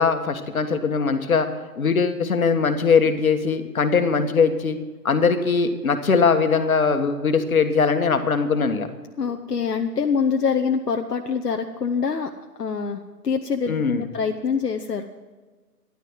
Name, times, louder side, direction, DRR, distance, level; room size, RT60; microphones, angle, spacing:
voice 1, 0.0-1.5 1.7-4.8 5.0-8.9 13.7-14.1, left 5 dB, 60° left, 8 dB, 1.6 m, -21 dB
voice 2, 9.2-12.3 12.6-15.0, left 6 dB, 75° left, 4 dB, 1.1 m, -25 dB
13.5 x 11.5 x 6.1 m, 1.3 s
figure-of-eight pair, 150°, 48 cm